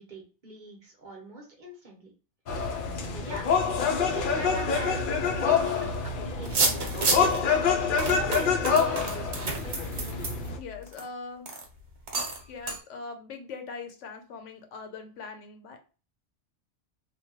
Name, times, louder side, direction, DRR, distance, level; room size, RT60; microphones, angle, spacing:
voice 1, 0.0-2.1 2.9-3.5 3.9-7.3 7.7-9.9, right 1 dB, 45° right, 0 dB, 0.9 m, -42 dB
sound 1, 2.5-10.6, left 5 dB, 60° left, 0.6 m, -26 dB
sound 2, 6.4-7.4 8.0-11.0 11.5-11.6 12.1-12.4 12.7-12.8, right 3 dB, 60° right, 1.0 m, -29 dB
voice 2, 10.6-11.5 12.5-15.8, left 4 dB, 85° left, 6 dB, 1.0 m, -41 dB
3.1 x 2.2 x 2.8 m, 0.35 s
omnidirectional pair, 1.2 m